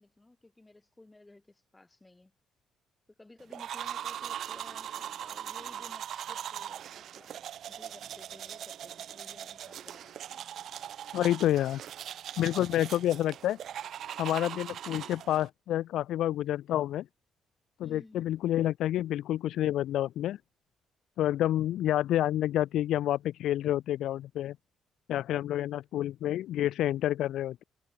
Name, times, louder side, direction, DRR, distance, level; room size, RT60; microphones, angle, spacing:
voice 1, 0.0-2.3 3.2-10.5 17.8-18.3, left 2 dB, 15° left, 6.2 m, -55 dB
sound 1, 3.5-15.5, right 10 dB, 70° right, 1.3 m, -40 dB
voice 2, 11.1-11.8 12.4-13.6 14.2-17.1 17.8-20.4 21.2-24.6 25.1-27.6, left 12 dB, 80° left, 0.3 m, -29 dB
cardioid pair, 90°, 0 cm